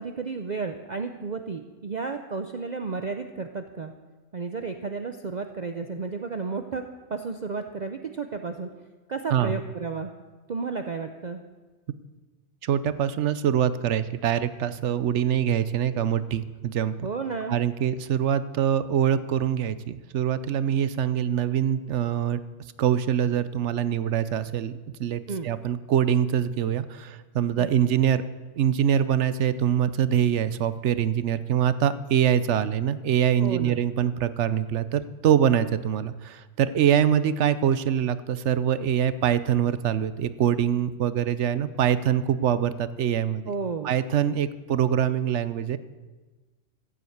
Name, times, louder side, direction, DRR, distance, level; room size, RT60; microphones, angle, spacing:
voice 1, 0.0-3.9 4.3-6.8 7.1-8.7 9.1-10.1 10.5-11.4 17.0-17.6 25.3-25.5 27.5-27.7 33.4-33.8 43.5-44.0, right 4 dB, 45° right, 6 dB, 0.7 m, -32 dB
voice 2, 12.6-16.9 17.5-22.4 22.8-24.7 25.0-28.3 28.6-43.5 43.8-45.8, right 9 dB, 70° right, 14 dB, 1.0 m, -24 dB
15.0 x 7.7 x 8.0 m, 1.3 s
omnidirectional pair, 1.3 m